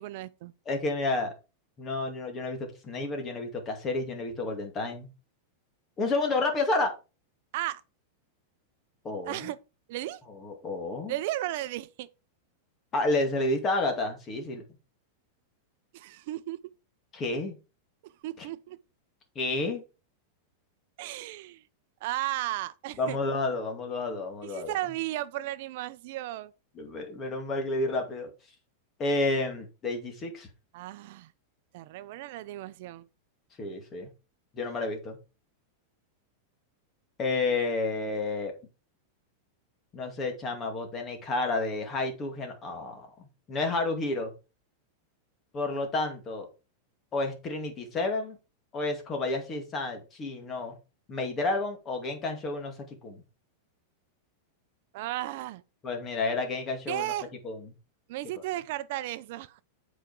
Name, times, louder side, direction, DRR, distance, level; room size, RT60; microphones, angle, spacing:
voice 1, 0.0-0.5 7.5-7.8 9.3-9.6 9.9-10.2 11.1-12.1 15.9-16.6 18.0-18.8 21.0-21.6 22.0-23.2 24.4-26.5 30.7-31.3 31.7-33.1 54.9-55.6 56.9-57.3 58.1-59.6, right 15 dB, 55° right, 0.6 m, -35 dB
voice 2, 0.7-1.3 1.8-2.6 2.8-5.1 6.0-6.9 9.0-9.5 10.4-11.1 12.9-14.6 17.1-17.6 19.4-19.8 23.0-24.7 26.8-28.3 29.0-30.5 33.6-34.1 34.5-35.2 37.2-38.5 39.9-43.1 43.5-44.3 45.5-46.5 47.1-48.4 48.7-50.7 51.1-52.7 53.0-53.2 55.8-57.1 57.4-57.7, left 2 dB, 25° left, 2.2 m, -30 dB
8.2 x 5.1 x 4.8 m
supercardioid pair, 155°, 0 cm